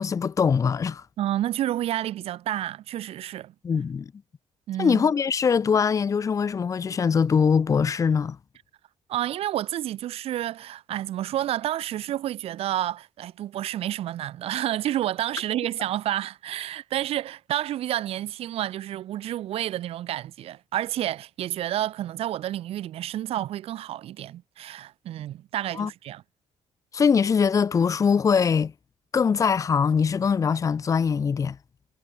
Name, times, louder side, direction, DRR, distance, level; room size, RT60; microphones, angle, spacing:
voice 1, 0.0-1.0 3.6-4.1 4.8-8.4 25.8-25.9 26.9-28.7 29.1-31.6, left 6 dB, 30° left, 1.2 m, -22 dB
voice 2, 1.2-3.5 4.7-5.1 9.1-26.2, right 13 dB, 65° right, 1.2 m, -30 dB
cardioid pair, 140°, 11 cm